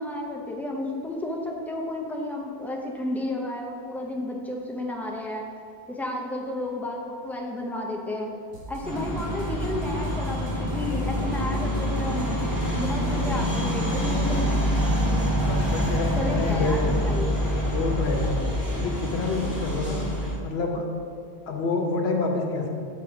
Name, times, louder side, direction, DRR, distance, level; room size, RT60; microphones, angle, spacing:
voice 1, 0.0-5.5 5.9-8.3 8.7-12.4 12.8-14.5 16.2-17.3, left 1 dB, ahead, -1 dB, 0.5 m, -32 dB
sound 1, 8.5-16.2, right 6 dB, 80° right, 1.0 m, -41 dB
sound 2, 8.8-20.3, equal, 20° right, 1.3 m, -26 dB
voice 2, 13.2-13.5 15.3-17.1 17.6-18.4 18.7-20.1 20.4-20.9 21.5-22.7, left 3 dB, 70° left, 2 dB, 1.1 m, -28 dB
7.1 x 4.1 x 5.1 m, 2.3 s
omnidirectional pair, 1.1 m